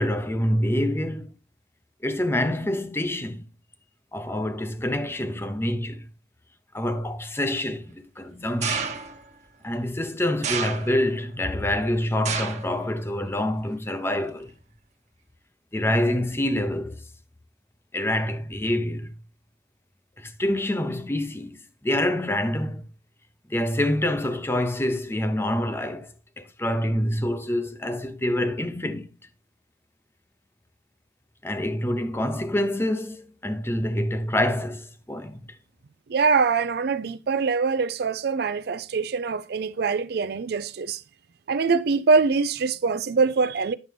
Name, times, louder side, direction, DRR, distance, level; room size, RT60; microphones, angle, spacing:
voice 1, 0.0-1.3 2.0-3.4 4.1-6.0 6.7-8.9 9.6-14.5 15.7-17.0 17.9-19.1 20.2-22.8 23.5-26.1 26.4-29.1 31.4-35.4, left 1 dB, 15° left, 0.7 m, -26 dB
sound 1, 8.6-9.3 10.4-11.2 12.2-12.7 13.1-13.6 14.5-14.6, right 6 dB, 40° right, 1.1 m, -30 dB
voice 2, 36.1-41.0 41.5-43.7, right 4 dB, 65° right, 0.4 m, -23 dB
9.3 x 6.5 x 3.3 m
head